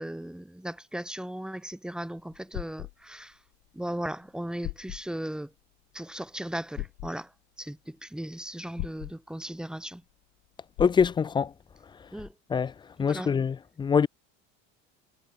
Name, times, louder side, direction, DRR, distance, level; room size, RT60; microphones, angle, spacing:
voice 1, 0.0-3.4 3.7-5.5 5.9-7.3 7.6-10.0 12.1-12.3 13.0-13.3, right 1 dB, ahead, 1.7 m, -37 dB
sound 1, 2.3-2.9 4.2-4.3 4.6-5.0 6.7-7.1 8.8-9.1 10.8-11.1, left 37 dB, 85° left, 2.7 m, -36 dB
voice 2, 10.8-11.5 12.5-12.7 13.0-14.1, left 6 dB, 15° left, 0.3 m, -24 dB
cardioid pair, 140°, 31 cm